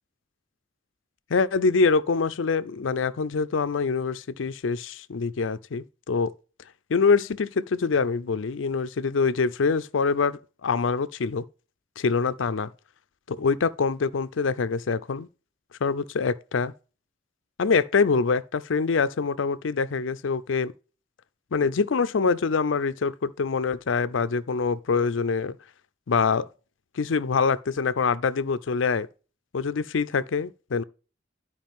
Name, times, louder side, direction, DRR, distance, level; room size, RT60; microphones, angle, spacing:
voice 1, 1.3-6.3 6.9-11.4 12.0-12.7 13.3-15.3 15.8-16.7 17.6-20.7 21.5-25.6 26.1-26.5 27.0-29.1 29.5-30.8, left 5 dB, 90° left, 0.5 m, -25 dB
12.0 x 4.8 x 3.6 m
head